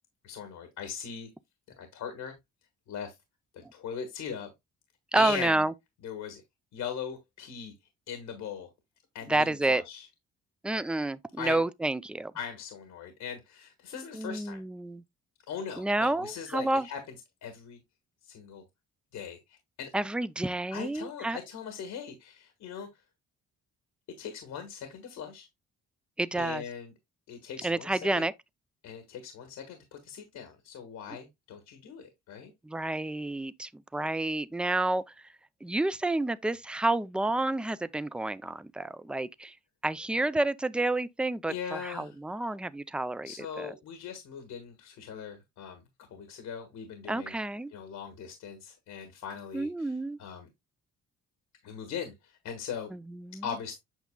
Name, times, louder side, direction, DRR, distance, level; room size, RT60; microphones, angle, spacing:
voice 1, 0.2-1.3 1.7-2.3 2.9-3.1 3.5-4.5 5.1-5.6 6.0-6.4 6.7-7.7 8.1-8.7 9.1-10.1 11.4-11.6 12.3-14.6 15.5-17.0 17.4-17.8 18.2-18.6 19.1-19.9 20.7-23.0 24.2-25.5 26.3-26.9 27.3-28.2 28.8-32.5 41.5-42.2 43.2-45.8 46.1-47.3 47.7-50.5 51.6-52.9 53.4-53.8, left 7 dB, 80° left, 1.5 m, -40 dB
voice 2, 5.1-5.7 9.3-9.8 10.6-12.3 14.1-15.0 15.8-16.9 19.9-21.4 26.2-26.6 27.6-28.3 32.6-35.0 35.6-39.5 39.8-43.3 43.6-43.7 47.1-47.7 49.5-50.2 52.9-53.5, right 2 dB, 5° right, 0.4 m, -29 dB
8.1 x 5.9 x 2.2 m
cardioid pair, 90°, 30 cm